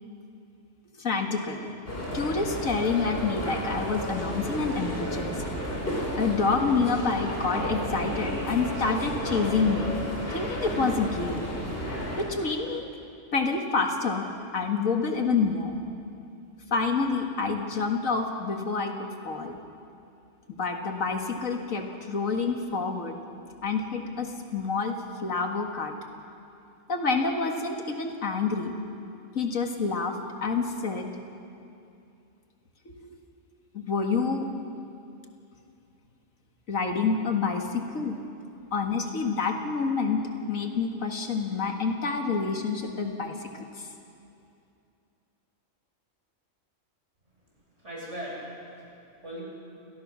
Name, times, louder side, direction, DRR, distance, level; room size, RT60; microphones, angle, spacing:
voice 1, 1.0-1.7 2.1-5.3 6.2-9.9 10.3-11.4 12.2-12.9 13.3-14.3 14.5-15.8 16.7-19.6 20.6-23.2 23.6-25.9 26.9-28.8 29.3-31.2 33.0-33.1 33.7-34.5 36.7-38.2 38.7-43.9, left 4 dB, 75° left, 3 dB, 2.1 m, -28 dB
sound 1, 1.9-12.2, equal, 45° left, 4.4 m, -32 dB
voice 2, 47.7-49.4, equal, 60° right, -4 dB, 7.0 m, -40 dB
28.0 x 19.0 x 6.2 m, 2.6 s
omnidirectional pair, 1.4 m